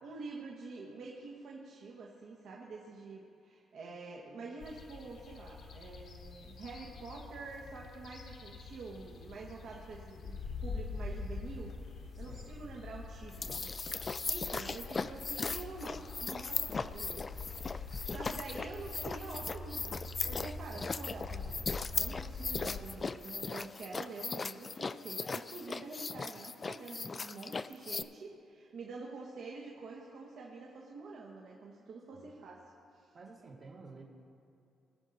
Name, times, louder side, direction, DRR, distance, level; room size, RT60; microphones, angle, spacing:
voice 1, 0.0-13.7 14.0-20.0 20.3-32.6 32.9-33.2, right 3 dB, 65° right, -2 dB, 1.3 m, -47 dB
sound 1, 4.6-22.8, left 3 dB, 65° left, 1.3 m, -45 dB
voice 2, 12.1-12.8 32.1-32.3 33.1-34.0, right 3 dB, 50° right, -4 dB, 1.4 m, -52 dB
sound 2, 13.3-28.0, left 4 dB, 35° left, 0.3 m, -38 dB
19.0 x 6.5 x 4.1 m, 2.7 s
cardioid pair, 90°, 0 cm